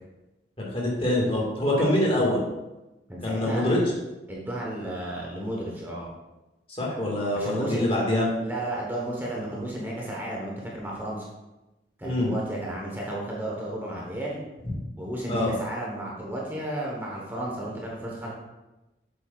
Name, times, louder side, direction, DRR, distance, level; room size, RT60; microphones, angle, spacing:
voice 1, 0.6-2.4 3.2-3.8 6.8-8.3 12.0-12.3 14.6-14.8 15.3-15.5, left 1 dB, 30° left, -3 dB, 1.8 m, -25 dB
voice 2, 3.1-3.8 4.3-6.1 7.3-7.8 8.4-11.3 12.0-14.4 15.0-18.3, right 1 dB, 10° right, -4 dB, 1.1 m, -33 dB
7.7 x 7.6 x 2.4 m, 1.0 s
head